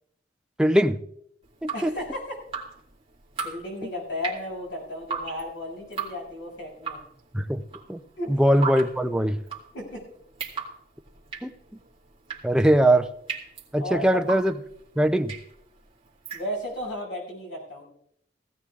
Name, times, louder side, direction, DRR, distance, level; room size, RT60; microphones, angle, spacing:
voice 1, 0.6-1.0 1.6-1.9 7.3-7.6 7.9-8.0 8.3-9.4 11.4-11.5 12.4-13.1 13.7-14.5 15.0-15.3, right 1 dB, 5° right, 7 dB, 0.4 m, -21 dB
Drip, 1.4-16.9, right 5 dB, 30° right, 2.1 m, -38 dB
voice 2, 1.7-2.4 3.4-7.0 8.2-8.4 9.7-10.0 13.8-14.3 16.3-17.8, left 1 dB, 75° left, -1 dB, 6.6 m, -34 dB
18.0 x 16.0 x 2.4 m, 0.72 s
head